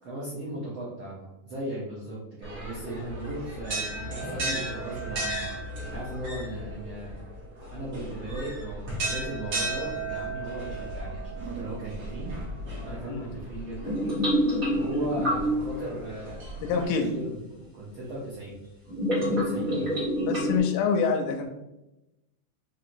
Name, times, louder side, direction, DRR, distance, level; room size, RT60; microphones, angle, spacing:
voice 1, 0.0-5.5 5.9-7.1 7.6-12.3 12.8-14.0 14.7-17.4 17.7-18.6 19.2-19.9, right 1 dB, 85° right, -7 dB, 1.1 m, -37 dB
sound 1, 2.4-16.8, right 2 dB, 65° right, 0.9 m, -36 dB
sound 2, 13.8-15.8 17.5-17.6 18.9-20.6, equal, 40° right, 1.4 m, -26 dB
voice 2, 16.6-17.1 20.2-21.5, left 5 dB, 85° left, 4 dB, 2.0 m, -26 dB
5.0 x 2.8 x 2.5 m, 0.93 s
omnidirectional pair, 3.6 m